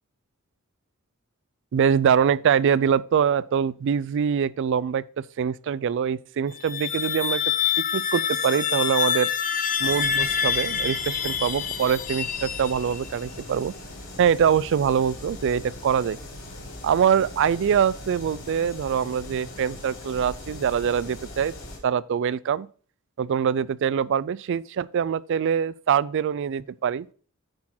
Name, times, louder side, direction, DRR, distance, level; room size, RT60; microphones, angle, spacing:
voice 1, 1.7-7.4 7.9-9.3 9.8-13.7 14.2-16.2 16.8-21.5 21.8-22.7 23.2-27.1, right 7 dB, 55° right, 0.3 m, -24 dB
sound 1, 6.5-13.1, left 8 dB, 40° left, 0.7 m, -26 dB
sound 2, 9.8-21.8, left 1 dB, 60° left, 3.0 m, -40 dB
9.6 x 4.3 x 4.3 m
head